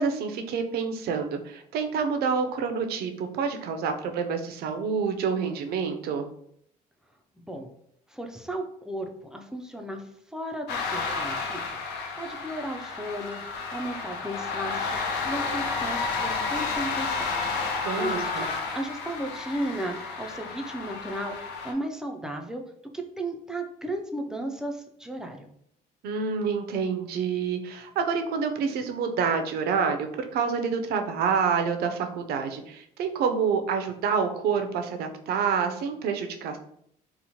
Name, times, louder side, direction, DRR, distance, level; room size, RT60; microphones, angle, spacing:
voice 1, 0.0-6.3 17.8-18.5 26.0-36.6, right 6 dB, 70° right, 6 dB, 0.4 m, -28 dB
voice 2, 8.1-15.0 15.3-17.3 17.7-22.6 22.9-25.5, right 1 dB, 5° right, 3 dB, 0.3 m, -35 dB
sound 1, 10.7-21.7, left 4 dB, 85° left, 0.5 m, -31 dB
2.9 x 2.0 x 2.7 m, 0.70 s
cardioid pair, 110°, 17 cm